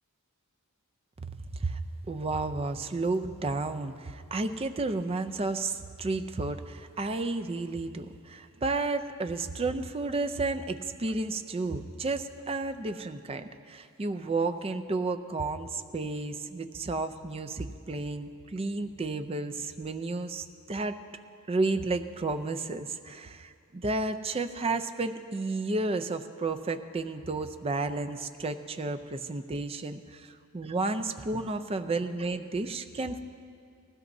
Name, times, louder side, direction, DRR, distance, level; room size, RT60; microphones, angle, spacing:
voice 1, 2.1-21.0 21.5-30.3 30.5-33.2, right 3 dB, 25° right, 9 dB, 0.5 m, -32 dB
19.0 x 16.0 x 2.7 m, 2.3 s
head